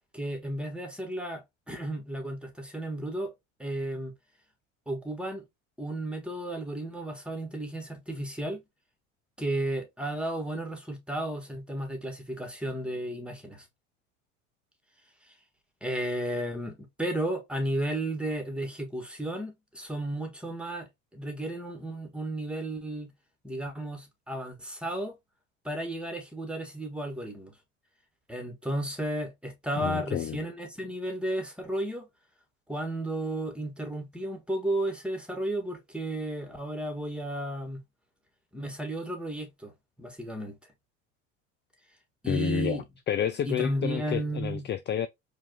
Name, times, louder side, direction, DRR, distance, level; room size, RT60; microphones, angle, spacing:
voice 1, 0.1-3.3 3.6-4.1 4.9-5.4 5.8-8.6 9.4-13.6 15.3-15.4 15.8-23.1 23.4-25.2 25.6-27.5 28.3-32.1 32.7-37.8 38.5-39.7 40.0-40.5 42.2-42.8 43.4-44.7, right 1 dB, 5° right, 1.7 m, -33 dB
voice 2, 29.8-30.4 42.3-45.1, left 10 dB, 30° left, 0.4 m, -30 dB
4.7 x 2.7 x 2.9 m
hypercardioid pair, 70°, 39 cm